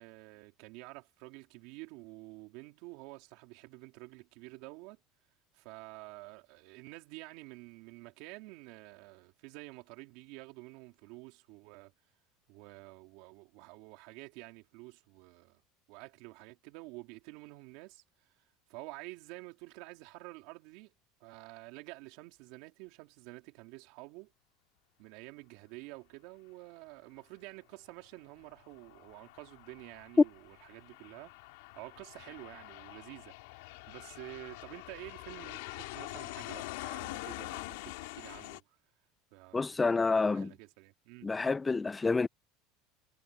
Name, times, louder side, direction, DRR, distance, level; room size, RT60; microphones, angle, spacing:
voice 1, 0.0-5.0 5.5-11.9 12.5-15.6 15.9-18.3 18.7-20.9 21.2-24.3 25.0-31.3 31.7-33.3 33.9-38.8 39.3-41.3, right 23 dB, 65° right, 3.4 m, -49 dB
Aircraft, 28.4-38.6, left 22 dB, 80° left, 3.2 m, -45 dB
voice 2, 39.5-40.5 41.2-42.3, left 4 dB, 10° left, 0.3 m, -28 dB
supercardioid pair, 145°, 0 cm